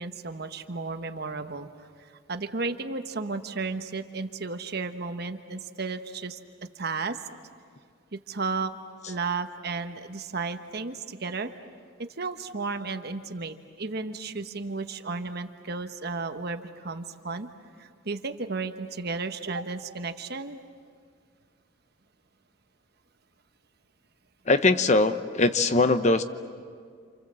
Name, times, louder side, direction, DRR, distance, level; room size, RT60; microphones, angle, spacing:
voice 1, 0.0-1.9 2.3-6.4 6.8-7.2 8.1-8.7 9.1-11.5 12.0-17.5 17.8-20.6, right 4 dB, 55° right, 8 dB, 1.2 m, -33 dB
voice 2, 24.5-26.2, left 3 dB, 35° left, 10 dB, 0.8 m, -21 dB
29.0 x 27.5 x 7.6 m, 2.1 s
head